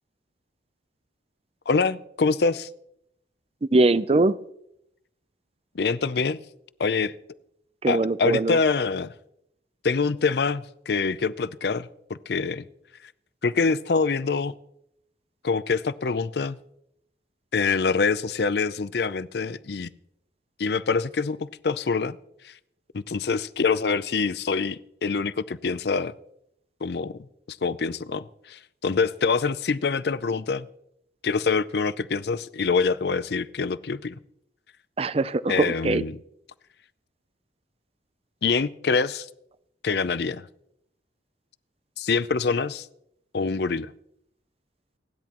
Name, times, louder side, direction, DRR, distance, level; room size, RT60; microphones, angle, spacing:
voice 1, 1.7-2.7 5.7-6.4 6.8-7.1 7.9-9.1 9.8-12.7 13.4-14.5 15.4-16.6 17.5-19.9 20.6-22.2 22.4-22.5 22.9-26.1 26.8-27.2 27.5-30.7 31.2-34.2 35.5-36.2 38.4-39.3 39.8-40.5 42.0-42.9 43.3-43.9, left 4 dB, 60° left, 16 dB, 0.5 m, -25 dB
voice 2, 3.7-4.4 7.8-8.6 35.0-36.0, right 2 dB, 35° right, 16 dB, 0.5 m, -22 dB
29.5 x 10.5 x 3.0 m, 0.77 s
head